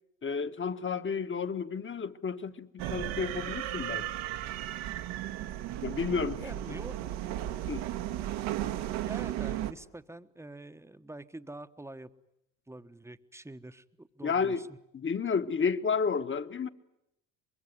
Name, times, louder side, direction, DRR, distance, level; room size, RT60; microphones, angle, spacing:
voice 1, 0.2-4.1 5.8-6.5 7.7-7.8 14.2-14.6 14.9-16.7, left 5 dB, 25° left, 1.4 m, -31 dB
sound 1, 2.8-9.7, right 13 dB, 65° right, 1.5 m, -35 dB
voice 2, 6.4-7.0 8.3-8.4 9.1-12.1 12.7-14.8, right 1 dB, 5° right, 1.2 m, -46 dB
24.5 x 22.5 x 9.9 m
hypercardioid pair, 70°, 50 cm